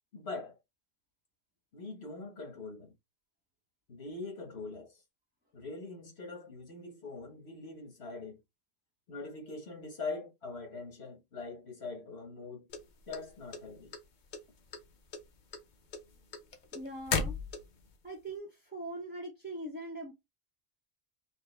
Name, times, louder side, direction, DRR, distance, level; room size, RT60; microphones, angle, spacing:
voice 1, 0.1-0.6 1.7-2.9 3.9-5.0 5.5-8.4 9.1-12.7 13.1-13.9, left 3 dB, 70° left, 1.7 m, -42 dB
sound 1, 12.7-14.0 14.3-14.8 15.1-17.9, left 5 dB, 50° left, 0.7 m, -35 dB
voice 2, 16.7-17.4 18.0-20.1, right 1 dB, 10° right, 0.8 m, -41 dB
5.1 x 2.2 x 3.3 m
omnidirectional pair, 1.1 m